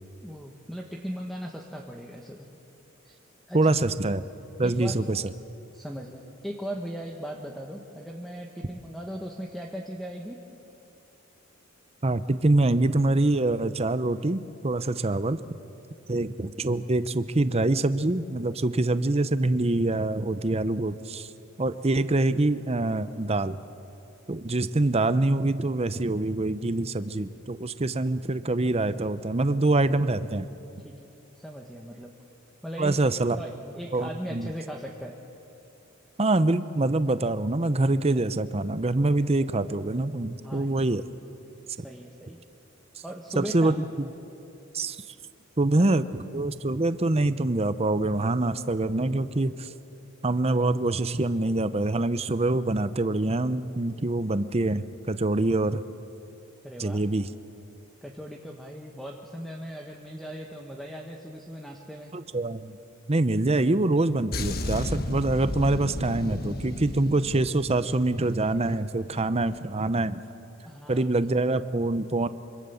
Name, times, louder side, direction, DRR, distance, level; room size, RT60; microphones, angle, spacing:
voice 1, 0.2-2.5 3.0-3.1 3.5-3.7 4.6-5.0 5.7-10.4 30.8-32.1 32.6-33.5 33.7-35.2 40.4-40.7 41.8-42.4 43.0-43.9 56.6-57.0 58.0-62.1 70.6-71.1, equal, ahead, 1 dB, 1.4 m, -38 dB
voice 2, 3.5-4.2 4.6-5.2 12.0-15.4 16.1-21.3 21.6-23.6 24.3-30.5 32.8-33.4 33.9-34.5 36.2-41.0 43.4-43.8 44.7-45.0 45.6-49.7 50.2-55.8 56.8-57.3 62.1-62.8 63.1-70.2 70.9-72.3, right 2 dB, 30° right, 13 dB, 0.7 m, -25 dB
sound 1, 64.3-68.9 69.1-69.4, left 1 dB, 45° left, 1.4 m, -34 dB
25.5 x 25.0 x 7.1 m, 2.8 s
head